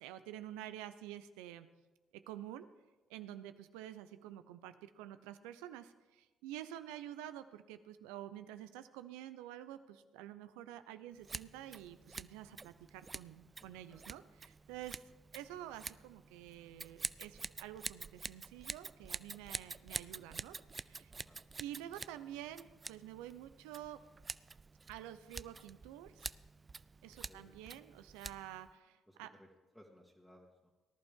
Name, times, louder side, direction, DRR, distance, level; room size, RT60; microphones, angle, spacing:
voice 1, 0.0-1.7 2.3-2.7 3.1-15.0 15.3-20.6 20.8-21.1 21.6-24.0 24.9-26.3 27.0-29.3, right 12 dB, 85° right, 11 dB, 0.6 m, -49 dB
Scissors, 11.2-28.7, right 4 dB, 35° right, 0.4 m, -48 dB
voice 2, 13.6-14.0 21.1-21.4 27.0-27.8 29.1-29.5 29.7-30.7, equal, 5° left, -4 dB, 2.0 m, -62 dB
18.5 x 11.5 x 3.7 m, 1.2 s
hypercardioid pair, 55°, 0 cm